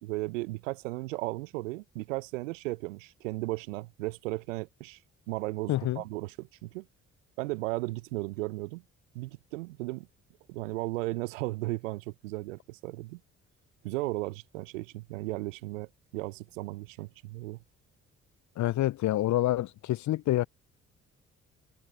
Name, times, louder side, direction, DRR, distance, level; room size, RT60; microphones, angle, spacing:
voice 1, 0.0-5.0 5.3-6.9 7.4-8.8 9.1-10.1 10.5-13.2 13.8-17.6, right 21 dB, 75° right, 1.0 m, -35 dB
voice 2, 5.7-6.0 18.6-20.5, left 15 dB, 50° left, 0.7 m, -27 dB
figure-of-eight pair, 45°, 38 cm